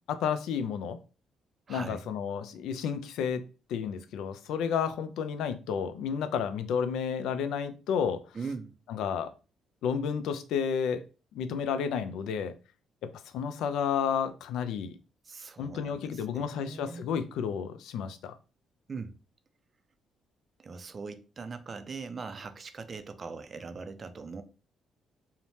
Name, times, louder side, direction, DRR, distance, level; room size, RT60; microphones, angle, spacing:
voice 1, 0.1-1.0 1.7-3.4 3.7-8.2 8.9-9.3 9.8-11.0 11.3-12.5 13.0-14.9 15.6-18.3, left 7 dB, 85° left, 0.3 m, -31 dB
voice 2, 1.7-2.1 8.3-8.7 15.2-17.1 18.9-19.1 20.6-24.4, right 4 dB, 40° right, 0.4 m, -41 dB
2.7 x 2.1 x 3.1 m
cardioid pair, 90°, 0 cm